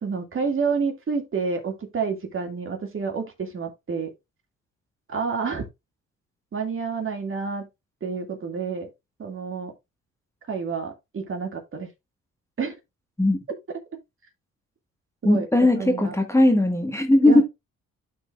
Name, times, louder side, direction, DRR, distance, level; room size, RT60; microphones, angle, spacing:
voice 1, 0.0-4.1 5.1-5.6 6.5-7.7 8.0-8.9 9.2-9.7 10.5-11.9 12.6-12.7 15.2-15.5 15.8-16.1 17.2-17.4, right 5 dB, 45° right, 2.4 m, -29 dB
voice 2, 15.2-17.4, left 1 dB, 10° left, 1.6 m, -18 dB
12.0 x 4.5 x 2.5 m
cardioid pair, 90°, 30 cm